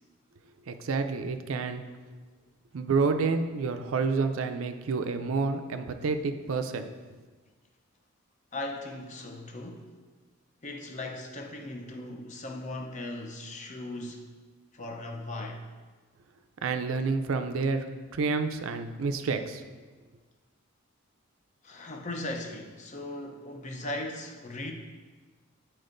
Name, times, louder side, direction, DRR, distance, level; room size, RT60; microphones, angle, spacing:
voice 1, 0.7-1.8 2.7-6.9 16.6-19.6, right 4 dB, 75° right, 8 dB, 0.4 m, -29 dB
voice 2, 8.5-9.8 10.6-14.2 14.7-15.6 21.6-24.7, left 2 dB, 35° left, 3 dB, 0.6 m, -38 dB
9.6 x 4.4 x 2.6 m, 1.4 s
head